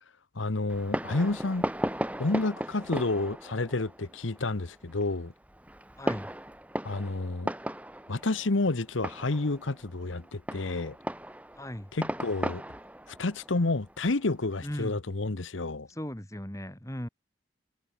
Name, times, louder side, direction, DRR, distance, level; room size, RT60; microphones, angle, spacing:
voice 1, 0.3-1.7 2.2-5.3 6.8-7.5 8.1-11.0 11.9-12.6 13.2-15.9, left 2 dB, 85° left, 1.1 m, -30 dB
Fireworks, 0.7-14.9, right 1 dB, 5° right, 2.3 m, -37 dB
voice 2, 6.0-6.3 11.6-11.9 14.6-15.0 15.9-17.1, equal, 15° left, 2.3 m, -37 dB
head